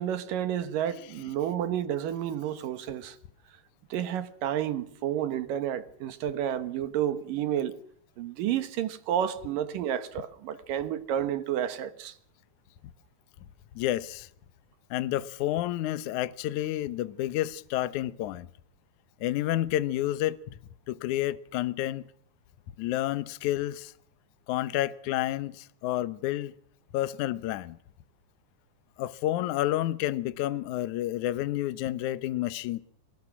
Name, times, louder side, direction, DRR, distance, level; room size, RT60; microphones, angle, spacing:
voice 1, 0.0-3.2 3.9-7.8 8.2-12.1, right 10 dB, 65° right, 2.7 m, -30 dB
voice 2, 0.9-1.3 13.8-14.3 14.9-18.5 19.2-20.4 20.9-22.1 22.8-23.9 24.5-26.5 26.9-27.8 29.0-32.8, left 14 dB, 70° left, 1.9 m, -30 dB
25.5 x 21.0 x 6.2 m
omnidirectional pair, 4.6 m